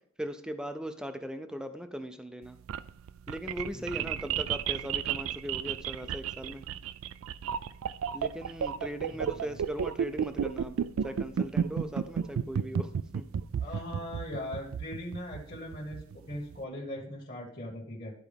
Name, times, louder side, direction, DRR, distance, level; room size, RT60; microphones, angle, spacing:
voice 1, 0.2-2.6 3.3-6.6 8.1-10.8 11.0-13.3, equal, 5° right, 8 dB, 0.4 m, -39 dB
sound 1, 2.4-16.6, right 8 dB, 70° right, 0.3 m, -32 dB
voice 2, 3.7-4.1 9.1-9.6 13.5-18.1, left 1 dB, 40° left, -2 dB, 1.4 m, -40 dB
12.0 x 4.6 x 3.5 m, 0.65 s
head